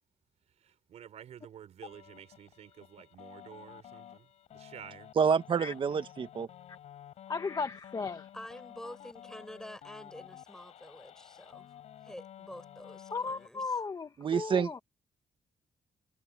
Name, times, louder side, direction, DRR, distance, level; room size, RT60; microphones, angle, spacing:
voice 1, 0.6-5.1, right 10 dB, 80° right, 4.9 m, -51 dB
sound 1, 1.8-13.5, left 10 dB, 90° left, 4.8 m, -52 dB
voice 2, 5.1-6.5 14.2-14.8, right 6 dB, 50° right, 1.5 m, -28 dB
voice 3, 7.3-8.3 13.1-14.8, left 4 dB, 35° left, 1.3 m, -35 dB
voice 4, 8.3-11.7 12.0-13.7, left 1 dB, 5° left, 5.7 m, -48 dB
cardioid pair, 120°, 11 cm